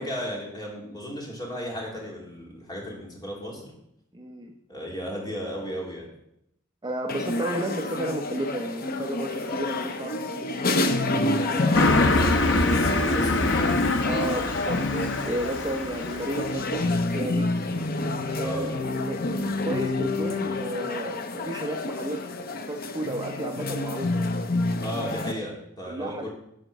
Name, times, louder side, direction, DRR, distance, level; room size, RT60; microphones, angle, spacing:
voice 1, 0.0-3.6 4.7-6.1 11.2-12.4 13.1-13.7 18.4-18.8 24.8-26.3, equal, 20° left, -3 dB, 2.9 m, -35 dB
voice 2, 4.1-4.5 6.8-10.6 14.0-17.5 18.4-18.7 19.0-22.2 22.7-24.1 25.9-26.3, right 1 dB, 20° right, 2 dB, 0.8 m, -32 dB
sound 1, 7.1-25.3, left 2 dB, 50° left, 0.8 m, -28 dB
Car passing by, 11.7-16.7, left 2 dB, 65° left, 1.0 m, -24 dB
11.0 x 5.2 x 6.6 m, 0.78 s
head